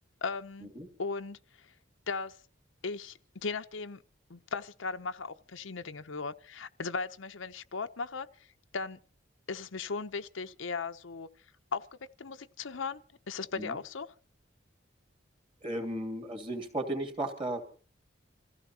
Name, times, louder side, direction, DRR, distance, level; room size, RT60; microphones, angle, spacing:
voice 1, 0.2-0.7 1.0-1.7 2.1-2.4 2.8-4.0 4.3-8.3 8.7-9.0 9.5-11.3 11.7-11.9 12.2-14.1, left 4 dB, 80° left, 0.8 m, -37 dB
voice 2, 15.6-17.6, right 1 dB, 25° right, 2.7 m, -35 dB
27.0 x 16.0 x 2.9 m
head